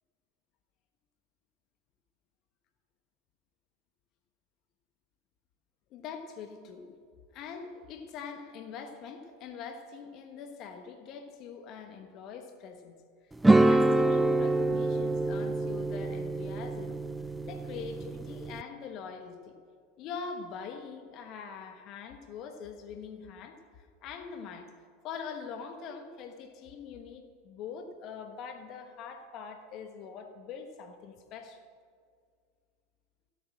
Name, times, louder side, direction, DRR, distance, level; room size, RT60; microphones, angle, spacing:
voice 1, 5.9-7.0 7.3-13.0 13.2-17.0 17.4-19.6 20.0-24.7 25.0-31.6, left 6 dB, 50° left, 7 dB, 1.3 m, -43 dB
sound 1, 13.4-18.6, right 2 dB, 10° right, 0.5 m, -26 dB
16.0 x 8.2 x 6.3 m, 2.1 s
hypercardioid pair, 85°, 0 cm